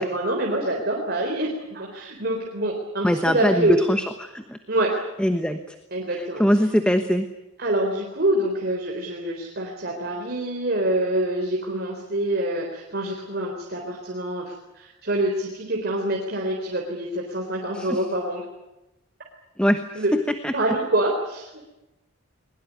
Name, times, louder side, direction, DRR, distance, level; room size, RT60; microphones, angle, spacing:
voice 1, 0.0-3.8 4.7-5.0 5.9-6.4 7.6-18.4 20.0-20.1 20.5-21.6, right 1 dB, 45° right, 0 dB, 3.9 m, -26 dB
voice 2, 3.0-4.6 5.2-5.6 6.1-7.3 17.7-18.0 19.6-20.0 20.4-20.5, equal, 5° left, 7 dB, 1.1 m, -22 dB
21.5 x 21.5 x 9.4 m, 0.94 s
head